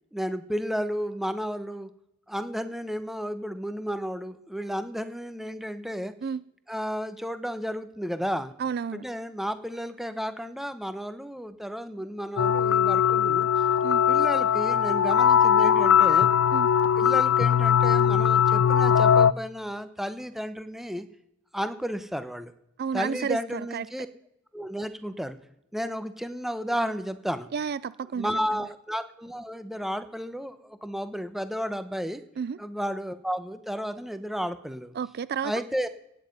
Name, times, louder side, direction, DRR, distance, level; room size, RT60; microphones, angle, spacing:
voice 1, 0.1-1.9 2.3-6.1 6.7-8.5 8.9-13.5 14.1-16.3 17.0-21.0 21.5-22.5 22.9-24.1 24.5-25.4 25.7-27.5 28.2-32.2 32.6-34.9 35.4-35.9, equal, ahead, 11 dB, 0.9 m, -32 dB
voice 2, 8.6-9.0 13.8-14.0 16.5-16.7 22.8-23.9 27.5-28.7 32.4-32.6 34.9-35.5, right 6 dB, 50° right, 18 dB, 0.4 m, -31 dB
sound 1, 12.4-19.3, left 8 dB, 70° left, 0.4 m, -20 dB
17.0 x 9.7 x 5.4 m, 0.80 s
head